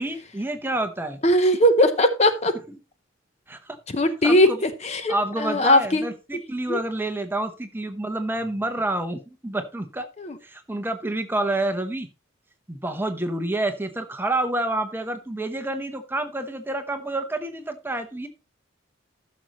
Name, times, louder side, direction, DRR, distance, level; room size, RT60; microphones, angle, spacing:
voice 1, 0.0-1.2 3.5-3.8 4.2-4.6 5.1-10.1 10.4-12.1 12.7-18.3, right 2 dB, 10° right, 0.8 m, -28 dB
voice 2, 1.2-2.5 3.9-6.1 6.7-6.8 10.2-10.4, left 1 dB, 35° left, 0.7 m, -19 dB
14.5 x 6.5 x 3.0 m
head